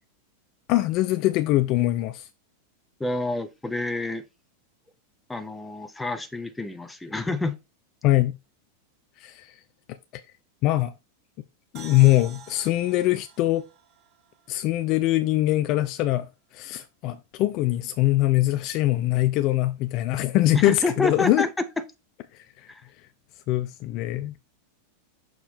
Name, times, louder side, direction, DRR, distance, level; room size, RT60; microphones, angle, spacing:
voice 1, 0.7-2.3 8.0-8.4 9.2-9.5 10.1-10.2 10.6-10.9 11.7-13.7 14.5-16.3 16.5-21.5 23.5-24.3, left 16 dB, 40° left, 0.4 m, -22 dB
voice 2, 3.0-4.2 5.3-7.6 20.5-21.6 22.7-22.8, left 2 dB, 5° left, 0.8 m, -28 dB
sound 1, 11.7-15.3, right 6 dB, 35° right, 1.0 m, -48 dB
6.4 x 2.9 x 5.3 m
figure-of-eight pair, 90°, 0 cm